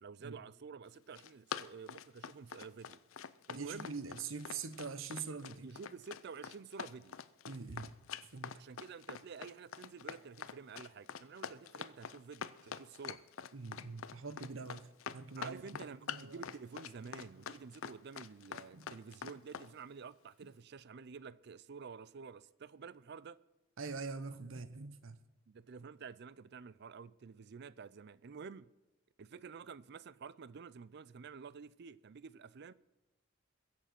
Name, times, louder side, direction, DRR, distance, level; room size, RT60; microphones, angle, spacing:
voice 1, 0.0-3.0 3.5-3.9 5.6-7.2 8.6-13.2 15.4-23.4 25.5-28.7 29.2-32.7, right 5 dB, 55° right, 0.5 m, -50 dB
Run, 0.9-19.7, left 7 dB, 85° left, 0.6 m, -45 dB
voice 2, 3.5-5.7 7.5-7.9 8.3-8.5 13.5-15.6 16.1-16.4 18.7-18.9 23.8-25.2, right 4 dB, 75° right, 1.0 m, -44 dB
22.0 x 7.4 x 5.9 m
head